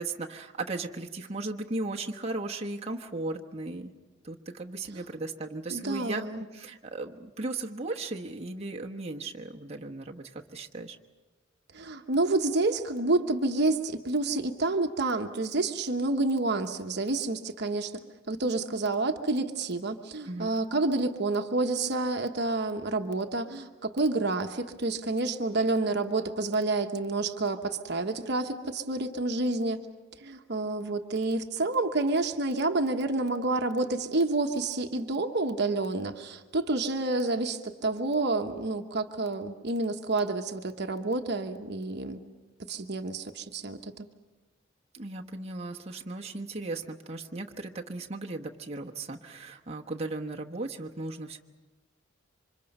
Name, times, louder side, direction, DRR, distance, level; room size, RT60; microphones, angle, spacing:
voice 1, 0.0-3.9 4.2-6.3 6.5-11.0 20.3-20.5 44.9-51.4, right 2 dB, 30° right, 0 dB, 1.1 m, -36 dB
voice 2, 5.7-6.4 11.7-17.9 18.3-29.8 30.2-42.2 42.7-44.1, right 2 dB, 55° right, 5 dB, 1.1 m, -29 dB
28.0 x 25.5 x 5.5 m, 1.2 s
head